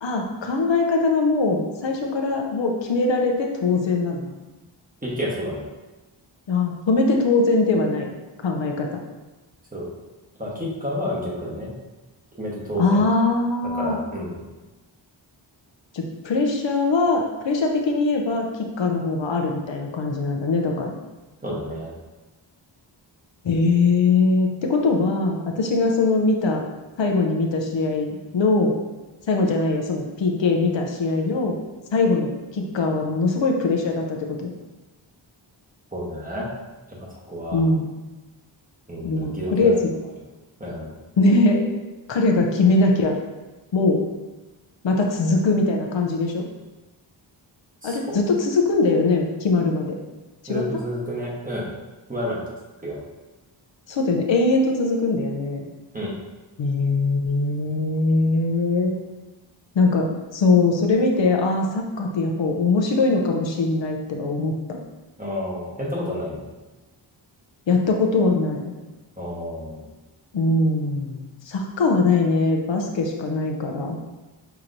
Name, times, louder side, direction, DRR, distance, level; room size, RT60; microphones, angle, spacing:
voice 1, 0.0-4.2 6.5-8.1 8.4-9.0 12.8-14.0 15.9-20.9 23.4-26.6 27.0-28.8 29.3-31.6 31.9-34.5 37.5-37.9 39.0-39.8 41.2-41.6 42.1-43.2 43.7-44.0 44.8-46.4 47.8-49.9 50.4-50.6 53.9-55.7 56.6-58.9 59.7-64.8 67.7-68.7 70.3-74.0, left 3 dB, 70° left, 1 dB, 0.6 m, -21 dB
voice 2, 5.0-5.7 9.7-9.9 10.4-11.7 12.4-13.0 13.7-14.4 21.4-21.9 35.9-36.5 36.9-37.6 38.9-39.7 40.6-40.9 47.8-48.2 50.5-51.7 52.1-52.4 52.8-53.0 55.9-56.2 65.2-66.4 69.2-69.8, equal, 20° right, -5 dB, 1.1 m, -30 dB
5.6 x 3.0 x 2.6 m, 1.1 s
wide cardioid pair, 95°, 47 cm